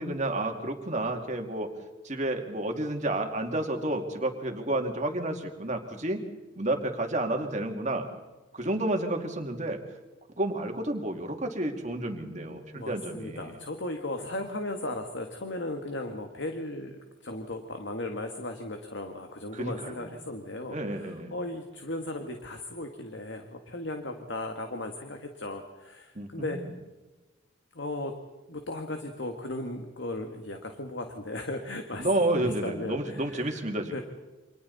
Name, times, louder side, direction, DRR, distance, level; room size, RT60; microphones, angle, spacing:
voice 1, 0.0-1.7 2.0-6.2 6.5-8.1 8.5-9.8 10.4-13.6 19.5-20.2 20.7-21.3 26.1-26.7 32.0-34.0, right 1 dB, 40° right, 3 dB, 2.6 m, -30 dB
voice 2, 12.7-26.6 27.7-28.1 28.5-32.1 32.4-33.6 33.9-34.0, left 1 dB, 65° left, 4 dB, 1.8 m, -36 dB
29.5 x 26.0 x 4.2 m, 1.1 s
head